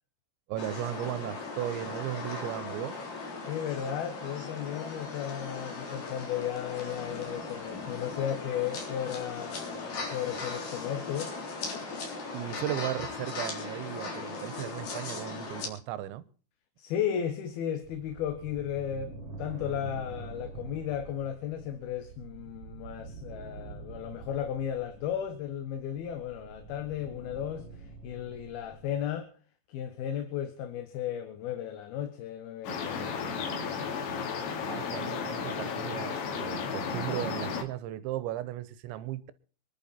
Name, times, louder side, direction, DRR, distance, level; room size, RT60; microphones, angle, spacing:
voice 1, 0.5-3.0 12.3-16.2 34.7-39.3, right 13 dB, 90° right, 3.4 m, -36 dB
sound 1, 0.6-15.7, left 3 dB, 50° left, 5.1 m, -38 dB
voice 2, 3.4-11.4 16.8-29.3 29.7-34.4, left 9 dB, 65° left, 3.0 m, -35 dB
sound 2, 17.8-29.1, right 4 dB, 40° right, 4.8 m, -46 dB
sound 3, 32.6-37.6, left 5 dB, 85° left, 4.8 m, -33 dB
25.0 x 11.5 x 4.3 m
omnidirectional pair, 5.1 m